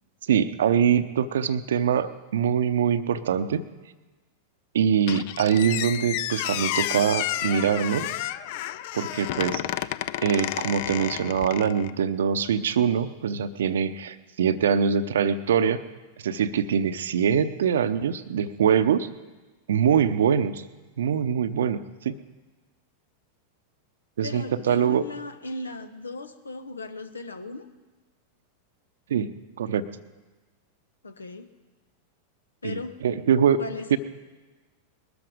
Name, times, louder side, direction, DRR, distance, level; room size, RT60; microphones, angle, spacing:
voice 1, 0.3-3.7 4.7-8.1 8.9-9.9 10.2-15.8 16.2-19.1 19.7-20.6 21.0-22.2 24.2-25.0 29.1-29.3 29.6-29.8 32.6-33.6 33.9-34.0, right 8 dB, 60° right, 12 dB, 0.7 m, -23 dB
Squeak, 5.1-11.9, left 13 dB, 50° left, 0.5 m, -31 dB
voice 2, 24.2-27.7 31.0-31.5 32.6-33.0 33.6-34.0, left 2 dB, 75° left, 10 dB, 1.1 m, -37 dB
20.5 x 13.0 x 5.0 m, 1.2 s
figure-of-eight pair, 90°, 0 cm